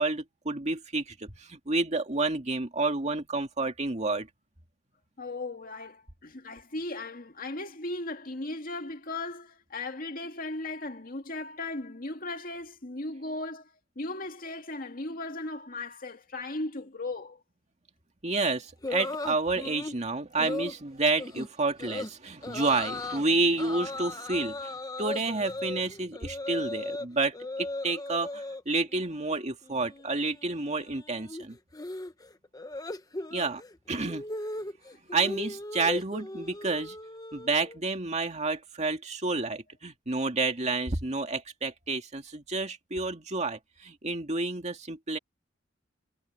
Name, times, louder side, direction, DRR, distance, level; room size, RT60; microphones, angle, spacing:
voice 1, 0.0-4.3 18.2-31.6 33.3-33.6 33.9-34.2 35.1-37.0 37.3-45.2, right 3 dB, 35° right, 2.2 m, -30 dB
voice 2, 5.2-17.4 33.9-34.0 34.9-35.0, left 2 dB, 50° left, 2.2 m, -37 dB
sound 1, 18.8-20.0 20.4-20.8 21.2-21.5 21.8-22.1 22.4-23.2 23.6-27.1 27.3-28.6 28.9-29.4 29.6-37.8, left 2 dB, 20° left, 1.0 m, -37 dB
head